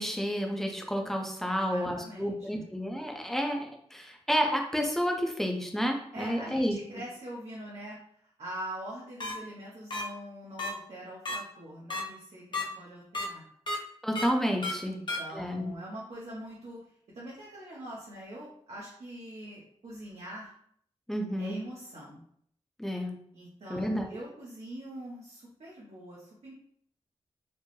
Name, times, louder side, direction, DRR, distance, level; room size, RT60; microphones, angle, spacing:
voice 1, 0.0-6.8 14.0-15.0 15.3-15.7 21.1-21.6 22.8-23.1 23.7-24.2, equal, 5° left, 2 dB, 0.6 m, -30 dB
voice 2, 1.5-2.7 6.1-13.4 14.8-16.9 17.1-20.5 21.4-22.2 23.3-26.6, right 1 dB, 80° right, -6 dB, 0.9 m, -43 dB
sound 1, 9.2-9.3 9.9-10.0 10.6-10.7 11.3-11.4 11.9-12.0 12.5-12.6 13.1-13.3 13.7-13.8 14.2-14.3 14.6-14.7 15.1-15.2, left 2 dB, 45° left, 0.7 m, -32 dB
4.4 x 2.1 x 3.1 m, 0.64 s
wide cardioid pair, 95°, 11 cm